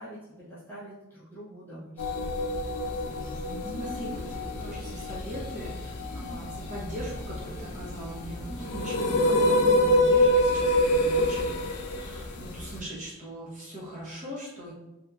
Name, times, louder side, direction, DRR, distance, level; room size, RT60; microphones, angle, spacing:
voice 1, 0.0-2.3 2.8-3.2, right 1 dB, 10° left, -11 dB, 0.6 m, -45 dB
sound 1, 2.0-12.8, left 1 dB, 90° left, 0.4 m, -26 dB
sound 2, 3.2-9.3, right 1 dB, 40° left, 1.0 m, -43 dB
voice 2, 3.8-14.7, right 1 dB, 35° right, -6 dB, 0.8 m, -40 dB
2.8 x 2.5 x 2.3 m, 1.0 s
head